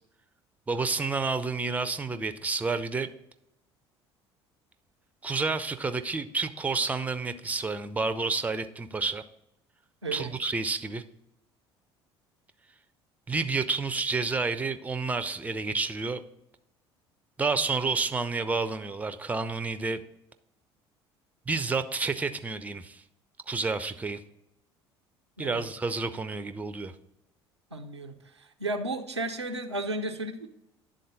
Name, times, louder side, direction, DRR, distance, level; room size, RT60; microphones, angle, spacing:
voice 1, 0.7-3.1 5.2-9.2 10.1-11.0 13.3-16.2 17.4-20.0 21.5-23.0 23.5-24.2 25.4-26.9, right 4 dB, 10° right, 11 dB, 0.4 m, -30 dB
voice 2, 27.7-30.5, right 2 dB, 90° right, 5 dB, 0.5 m, -34 dB
10.0 x 3.9 x 3.9 m, 0.84 s
figure-of-eight pair, 60°, 14 cm